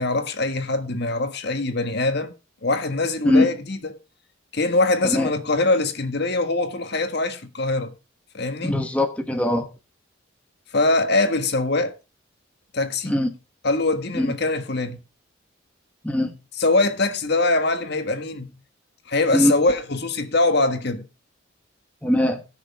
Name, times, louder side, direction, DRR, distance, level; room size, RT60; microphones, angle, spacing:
voice 1, 0.0-2.3 2.6-3.8 4.5-7.9 8.3-8.8 10.7-11.9 12.7-13.1 13.6-15.0 16.6-18.5 19.1-21.1, left 2 dB, 55° left, 1.6 m, -23 dB
voice 2, 8.6-9.7 13.0-13.3 14.2-14.3 16.0-16.3 19.3-19.5 22.0-22.4, left 1 dB, 5° left, 1.2 m, -21 dB
18.0 x 6.5 x 3.5 m
head